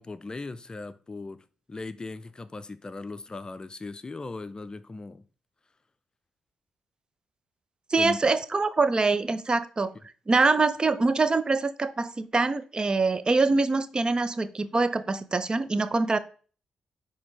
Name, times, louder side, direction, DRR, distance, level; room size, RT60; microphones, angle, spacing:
voice 1, 0.0-5.2 7.9-8.2, left 3 dB, 30° left, 0.5 m, -38 dB
voice 2, 7.9-9.9 10.3-16.2, right 3 dB, 35° right, 0.6 m, -24 dB
10.0 x 3.4 x 3.2 m
hypercardioid pair, 45°, 3 cm